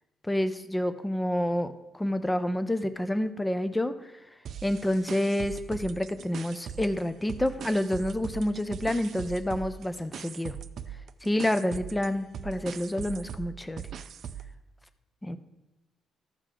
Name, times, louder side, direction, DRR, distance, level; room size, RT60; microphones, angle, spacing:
voice 1, 0.2-4.1 4.6-10.6 11.2-13.8 15.2-15.4, left 1 dB, 10° left, 10 dB, 0.5 m, -28 dB
sound 1, 4.5-7.0 7.3-14.5, right 8 dB, 60° right, 0.4 m, -40 dB
14.0 x 4.9 x 3.7 m, 0.99 s
cardioid pair, 90°, 0 cm